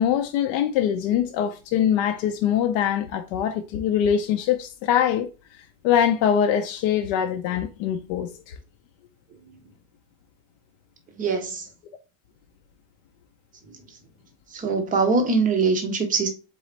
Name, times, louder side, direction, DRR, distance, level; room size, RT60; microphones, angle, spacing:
voice 1, 0.0-5.3 5.8-8.6, left 9 dB, 50° left, 0.6 m, -23 dB
voice 2, 11.2-11.7 13.7-13.8 14.5-16.3, right 4 dB, 15° right, 0.6 m, -23 dB
4.0 x 3.8 x 3.2 m
cardioid pair, 175°, 48 cm